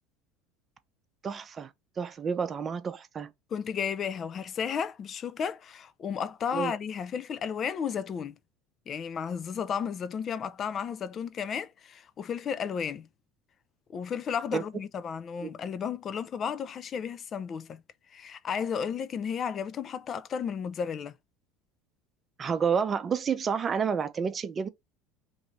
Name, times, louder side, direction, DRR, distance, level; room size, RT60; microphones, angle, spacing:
voice 1, 1.2-3.3 6.5-6.7 14.5-14.6 15.4-15.5 22.4-24.7, right 6 dB, 35° right, 0.6 m, -30 dB
voice 2, 3.5-8.4 8.9-13.1 13.9-17.8 18.1-21.1, left 7 dB, 40° left, 0.4 m, -33 dB
2.7 x 2.6 x 3.1 m
hypercardioid pair, 90°, 0 cm